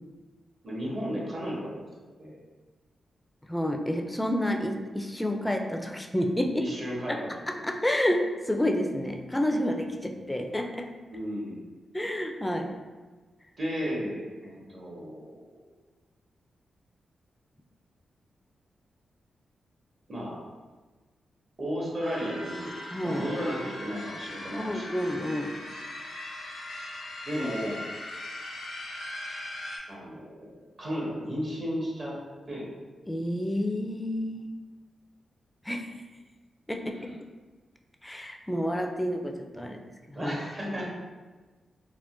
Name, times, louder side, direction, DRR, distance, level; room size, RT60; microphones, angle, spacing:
voice 1, 0.6-1.8 2.2-2.4 6.5-7.3 10.2-10.3 11.1-11.6 13.6-15.5 20.1-20.4 21.6-22.7 23.0-24.9 27.2-27.8 29.9-30.5 30.8-32.2 32.4-32.7 37.0-37.1 40.1-40.9, equal, 50° right, -4 dB, 1.1 m, -34 dB
voice 2, 3.4-6.7 7.1-7.2 7.5-10.9 11.9-12.7 22.9-23.2 24.6-25.5 33.1-34.5 35.6-35.9 36.7-37.1 38.0-39.8 40.1-40.4, left 1 dB, 10° left, 4 dB, 0.4 m, -29 dB
sound 1, 22.0-29.8, left 1 dB, 85° left, 0.7 m, -39 dB
3.5 x 2.2 x 2.5 m, 1.3 s
cardioid pair, 55°, 0 cm